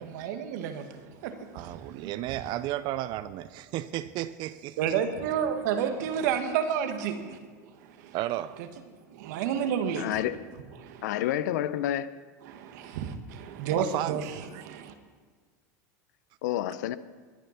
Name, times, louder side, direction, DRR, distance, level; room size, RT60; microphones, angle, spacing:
voice 1, 0.0-2.1 4.8-8.2 8.6-8.7 9.1-10.2 10.8-11.3 12.4-14.9, right 8 dB, 70° right, 1.7 m, -31 dB
voice 2, 1.5-4.8 8.1-8.6 13.8-14.2 14.5-14.6, right 14 dB, 55° right, 0.6 m, -33 dB
voice 3, 10.0-10.4 11.0-12.1 16.4-17.0, left 12 dB, 75° left, 0.7 m, -29 dB
21.0 x 9.2 x 5.8 m
hypercardioid pair, 100°, 10 cm